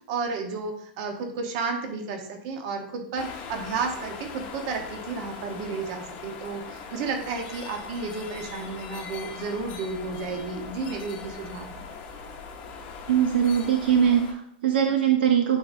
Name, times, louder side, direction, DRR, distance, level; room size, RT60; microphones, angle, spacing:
voice 1, 0.1-11.8, right 4 dB, 40° right, 3 dB, 1.1 m, -32 dB
sound 1, 3.2-14.3, left 5 dB, 30° left, 0.9 m, -40 dB
voice 2, 13.1-15.6, right 8 dB, 70° right, 4 dB, 0.8 m, -21 dB
9.4 x 4.0 x 2.7 m, 0.69 s
supercardioid pair, 160°, 6 cm